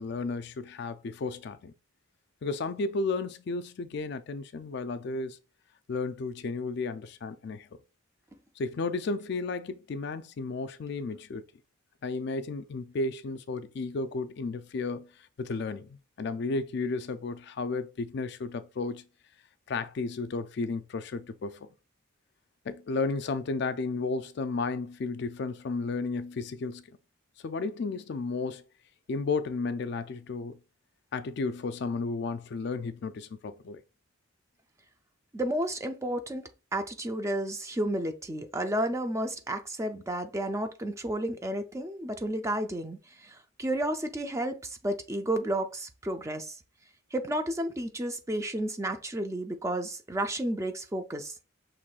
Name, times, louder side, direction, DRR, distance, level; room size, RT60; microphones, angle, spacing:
voice 1, 0.0-1.7 2.4-5.4 5.9-7.7 8.6-11.4 12.0-15.1 15.4-19.0 19.7-21.7 22.7-26.8 27.4-28.6 29.1-30.6 31.1-33.8, left 3 dB, 55° left, 0.4 m, -33 dB
voice 2, 35.3-46.6 47.1-51.4, right 1 dB, 15° right, 0.4 m, -32 dB
6.0 x 3.1 x 2.4 m
head